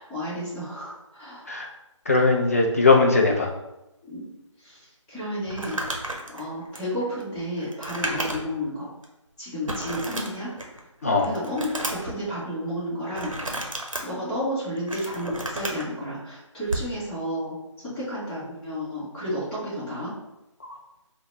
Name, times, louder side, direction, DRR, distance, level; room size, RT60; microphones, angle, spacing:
voice 1, 0.1-1.5 4.0-4.2 4.6-4.8 5.1-5.8 6.3-8.9 9.4-10.5 11.0-13.3 14.0-17.5 17.8-20.1, equal, 5° left, -13 dB, 0.8 m, -31 dB
voice 2, 2.1-3.5 11.0-11.3 20.6-20.7, left 3 dB, 30° left, 1 dB, 0.3 m, -19 dB
Crumpling crinkling, 5.5-8.6 9.0-9.1 9.7-10.8 11.2-12.1 13.1-14.0 14.6-15.8 16.6-16.9, right 1 dB, 85° right, 0.7 m, -32 dB
3.7 x 2.1 x 3.1 m, 0.93 s
figure-of-eight pair, 155°, 17 cm